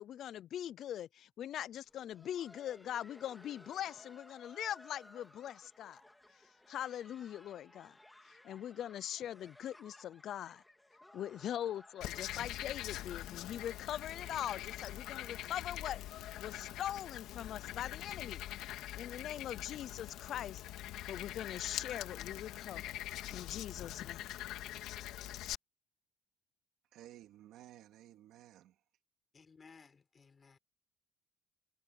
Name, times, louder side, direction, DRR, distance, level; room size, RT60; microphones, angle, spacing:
voice 1, 0.0-6.0 6.7-8.0 8.4-10.6 11.1-18.4 18.9-20.6 21.1-23.0 23.3-24.3, left 11 dB, 45° left, 0.5 m, -42 dB
Laughter, 1.7-17.4 17.7-17.8 18.4-18.5 19.0-19.2 20.3-20.4, left 1 dB, 5° left, 2.4 m, -61 dB
Frog, 12.0-25.6, left 14 dB, 65° left, 2.2 m, -44 dB
voice 2, 26.9-28.8, right 13 dB, 60° right, 2.7 m, -56 dB
voice 3, 29.3-30.6, left 5 dB, 20° left, 4.4 m, -59 dB
cardioid pair, 160°, 0 cm